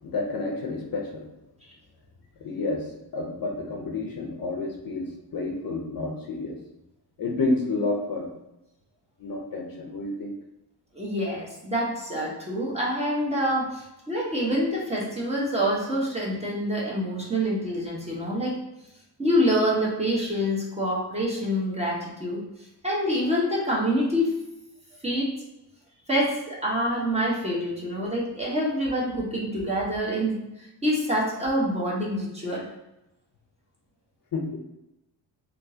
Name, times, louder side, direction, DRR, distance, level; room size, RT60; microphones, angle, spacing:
voice 1, 0.0-1.3 2.4-6.6 7.2-8.3 9.2-10.3 34.3-34.5, left 3 dB, 50° left, 1 dB, 0.7 m, -30 dB
voice 2, 10.9-18.5 19.2-22.4 22.8-24.3 25.0-25.3 26.1-30.4 30.8-32.7, equal, 15° right, -4 dB, 1.0 m, -26 dB
3.6 x 2.7 x 2.7 m, 0.92 s
cardioid pair, 95°, 44 cm